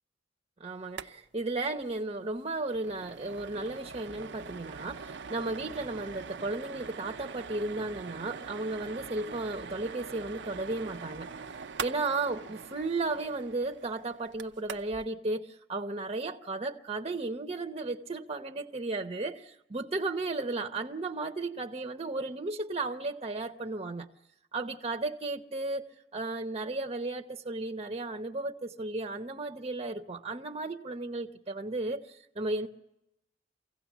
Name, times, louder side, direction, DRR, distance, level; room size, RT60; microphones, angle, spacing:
voice 1, 0.6-11.3 11.8-24.1 24.5-32.7, right 2 dB, 35° right, 0.9 m, -34 dB
sound 1, 0.8-1.1 1.4-1.5 1.8-2.0 2.4-15.1, right 5 dB, 65° right, 0.7 m, -43 dB
24.5 x 16.5 x 7.3 m
head